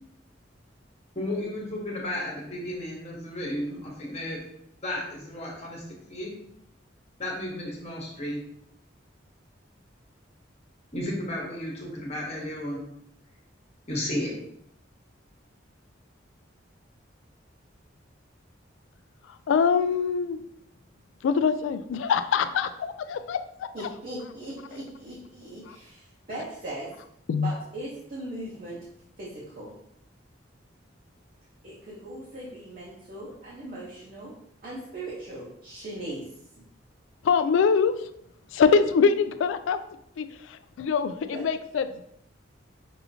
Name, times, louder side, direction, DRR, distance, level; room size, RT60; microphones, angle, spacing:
voice 1, 1.1-4.4 4.8-6.3 7.2-8.4 10.9-12.8 13.9-14.3, left 1 dB, 35° left, -3 dB, 1.1 m, -33 dB
voice 2, 19.5-20.4 21.2-23.4 27.3-27.5 37.2-38.1 38.5-39.8 40.2-42.0, left 6 dB, 80° left, 11 dB, 0.3 m, -24 dB
voice 3, 23.7-26.9 27.4-28.8 29.2-29.7 31.6-34.3 34.6-36.3 41.2-41.4, right 1 dB, 45° right, -6 dB, 0.9 m, -39 dB
5.5 x 2.8 x 2.7 m, 0.74 s
head